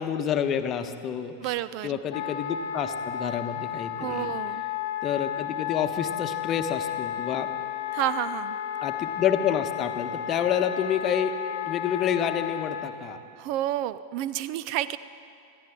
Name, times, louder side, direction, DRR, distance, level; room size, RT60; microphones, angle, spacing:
voice 1, 0.0-1.5 1.8-4.3 5.0-7.5 8.8-11.4 11.6-13.2, left 8 dB, 30° left, 8 dB, 1.0 m, -28 dB
voice 2, 1.4-2.0 4.0-4.6 7.9-8.6 13.4-15.0, right 13 dB, 45° right, 16 dB, 0.4 m, -30 dB
Wind instrument woodwind instrument, 2.1-12.9, left 10 dB, 55° left, 0.7 m, -33 dB
25.5 x 14.0 x 3.7 m, 2.4 s
figure-of-eight pair, 90°, 0 cm